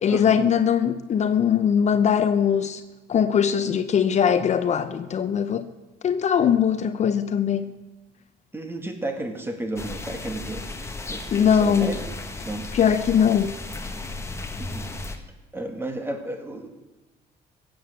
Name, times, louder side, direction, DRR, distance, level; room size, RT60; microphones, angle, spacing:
voice 1, 0.0-2.8 3.1-5.7 6.0-7.8 11.3-12.0 12.7-13.6, left 8 dB, 45° left, 0.7 m, -21 dB
voice 2, 8.5-12.0 12.4-12.7 14.5-14.8 15.5-16.7, right 1 dB, 15° right, 2.0 m, -32 dB
sound 1, 9.8-15.2, left 2 dB, 15° left, 1.4 m, -35 dB
16.0 x 7.9 x 8.0 m
cardioid pair, 110°, 17 cm